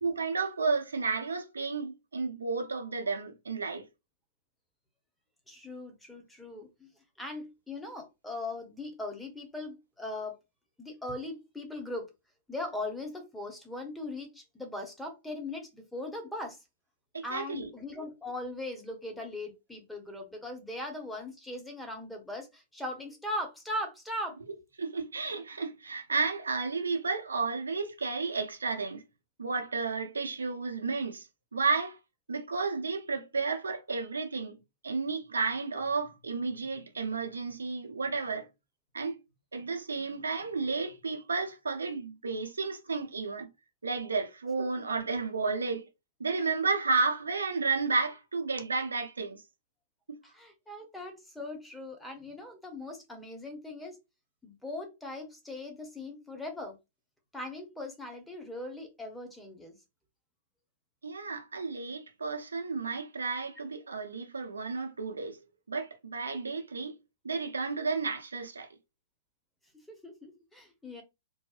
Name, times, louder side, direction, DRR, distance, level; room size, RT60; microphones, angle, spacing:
voice 1, 0.0-3.9 17.1-17.7 24.8-29.0 29.4-31.3 31.5-32.0 32.3-38.5 38.9-39.2 39.5-43.5 43.8-45.9 46.2-49.4 50.1-50.2 61.0-65.4 65.7-66.9 67.2-68.7, right 4 dB, 80° right, 0.5 m, -32 dB
voice 2, 5.5-6.9 7.2-10.4 10.8-12.1 12.5-16.6 17.2-24.4 50.2-54.0 54.4-56.7 57.3-59.8 69.7-71.0, left 1 dB, 5° left, 0.7 m, -39 dB
2.6 x 2.0 x 2.4 m
figure-of-eight pair, 110°, 0 cm